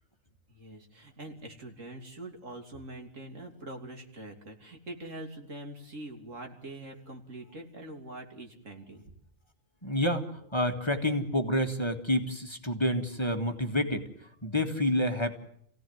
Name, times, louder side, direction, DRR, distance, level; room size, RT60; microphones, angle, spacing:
voice 1, 0.5-9.0, right 1 dB, 75° right, 3 dB, 3.5 m, -44 dB
voice 2, 9.8-15.4, left 1 dB, 20° left, 4 dB, 1.9 m, -29 dB
28.0 x 17.0 x 9.4 m, 0.68 s
omnidirectional pair, 1.3 m